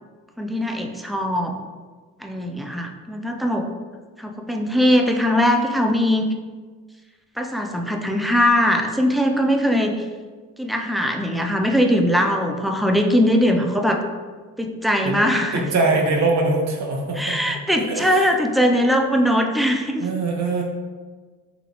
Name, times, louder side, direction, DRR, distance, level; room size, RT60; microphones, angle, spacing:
voice 1, 0.4-1.5 2.2-3.7 4.2-6.3 7.4-10.0 10.6-14.0 14.6-15.7 17.2-20.1, equal, ahead, 3 dB, 0.4 m, -20 dB
voice 2, 15.5-17.3 17.9-18.3 20.0-20.6, right 3 dB, 65° right, 1 dB, 0.9 m, -22 dB
4.9 x 3.1 x 3.3 m, 1.5 s
cardioid pair, 90°, 30 cm